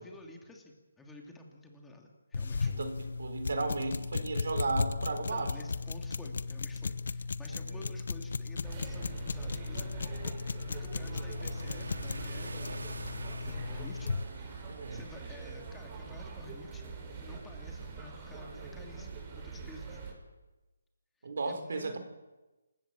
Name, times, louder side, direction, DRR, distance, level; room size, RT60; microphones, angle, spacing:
voice 1, 0.0-2.7 5.3-10.1 10.4-16.9 17.2-20.0 21.2-22.0, left 2 dB, 5° left, 1 dB, 2.7 m, -51 dB
sound 1, 2.3-14.2, left 4 dB, 65° left, 1.0 m, -36 dB
voice 2, 2.7-5.5 7.5-7.6 14.7-15.0 21.2-22.0, right 3 dB, 65° right, 8 dB, 4.2 m, -34 dB
sound 2, 7.8-19.9, right 3 dB, 85° right, 3.2 m, -50 dB
sound 3, 8.6-20.1, right 4 dB, 30° right, 5.7 m, -44 dB
27.5 x 16.0 x 7.6 m, 1.1 s
hypercardioid pair, 160°, 0 cm